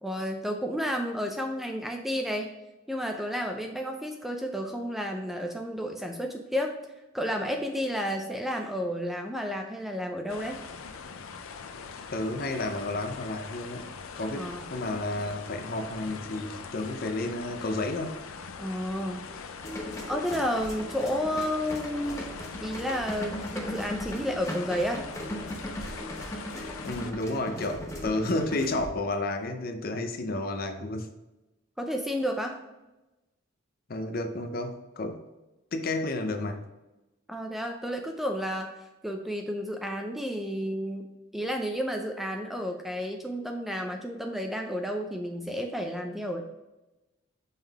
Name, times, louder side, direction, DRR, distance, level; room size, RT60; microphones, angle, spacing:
voice 1, 0.0-2.5 2.9-6.7 7.1-10.6 14.3-14.7 18.6-19.2 20.1-22.3 22.6-25.1 31.8-32.6 37.3-38.7 39.0-46.4, equal, ahead, 3 dB, 0.4 m, -31 dB
sound 1, 10.3-27.1, left 5 dB, 90° left, 0.5 m, -42 dB
voice 2, 12.1-13.9 14.2-18.2 26.8-31.1 33.9-35.2 35.7-36.6, left 2 dB, 45° left, 7 dB, 0.6 m, -31 dB
sound 2, 19.6-28.9, equal, 15° left, 0.9 m, -38 dB
5.5 x 3.7 x 4.7 m, 1.0 s
head